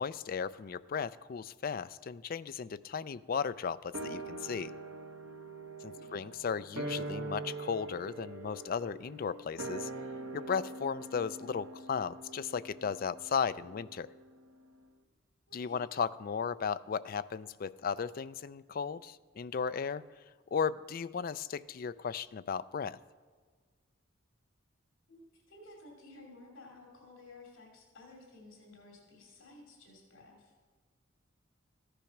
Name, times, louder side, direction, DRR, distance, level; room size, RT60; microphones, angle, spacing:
voice 1, 0.0-4.7 5.8-9.9 10.3-14.1 15.5-20.0 20.5-23.0, left 6 dB, 45° left, 15 dB, 0.3 m, -35 dB
sound 1, 3.9-14.5 14.8-14.9, right 2 dB, 85° right, 1.1 m, -43 dB
voice 2, 5.8-6.1 15.5-15.9 25.1-30.5, left 2 dB, 80° left, 0 dB, 2.7 m, -55 dB
14.0 x 10.0 x 5.9 m, 1.5 s
head